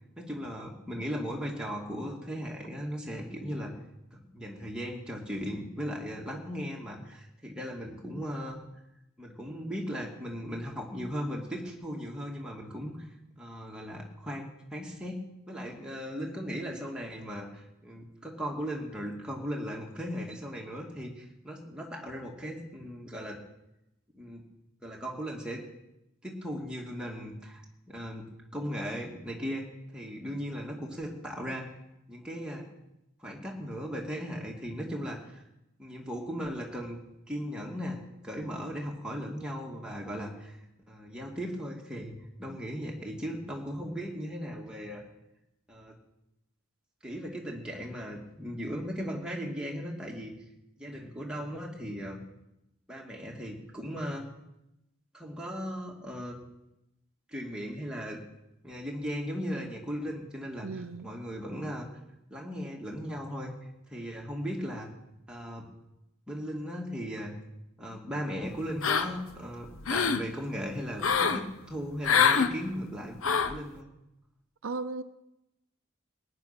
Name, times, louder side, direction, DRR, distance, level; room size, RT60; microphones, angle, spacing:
voice 1, 0.2-3.7 4.1-8.6 9.2-13.1 13.4-15.2 15.5-23.4 24.1-24.4 24.8-25.6 26.2-27.6 27.9-28.3 28.5-29.6 29.9-31.7 32.1-32.6 33.2-35.4 35.8-37.0 37.3-38.0 38.2-40.6 40.9-45.0 45.7-46.0 47.0-50.3 50.8-52.2 52.9-54.3 55.1-56.4 57.3-58.2 58.6-61.9 62.3-63.5 63.9-64.9 65.3-65.7 66.3-67.3 67.8-73.2 73.5-73.9, equal, 5° right, 2.1 m, -37 dB
voice 2, 60.6-61.1 74.6-75.0, right 3 dB, 75° right, 0.6 m, -36 dB
sound 1, 68.8-69.3 69.7-70.2 71.0-71.4 72.0-72.5 73.2-73.6, left 6 dB, 75° left, 0.9 m, -25 dB
18.5 x 9.8 x 5.9 m
head